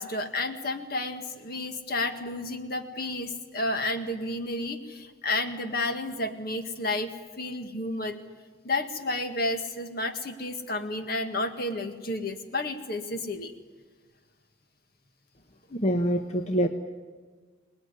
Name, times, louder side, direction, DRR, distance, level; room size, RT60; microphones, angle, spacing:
voice 1, 0.0-8.2 8.6-13.5, left 2 dB, 50° left, 7 dB, 1.9 m, -31 dB
voice 2, 15.7-16.7, equal, 30° left, 4 dB, 1.1 m, -25 dB
26.5 x 19.5 x 9.9 m, 1.5 s
head